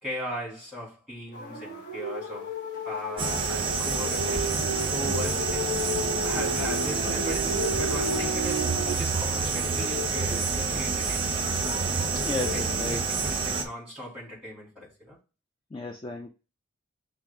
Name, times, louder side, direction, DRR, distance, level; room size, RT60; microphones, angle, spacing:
voice 1, 0.0-2.5 2.8-4.5 4.9-5.7 6.2-8.7 9.0-11.4 12.5-15.2, equal, 5° right, 2.8 m, -39 dB
sound 1, 1.3-9.0, equal, 45° left, 1.4 m, -32 dB
sound 2, 3.2-13.6, right 4 dB, 25° right, 0.8 m, -28 dB
voice 2, 12.1-13.2 15.7-16.3, left 2 dB, 25° left, 0.3 m, -34 dB
5.9 x 2.2 x 3.6 m
head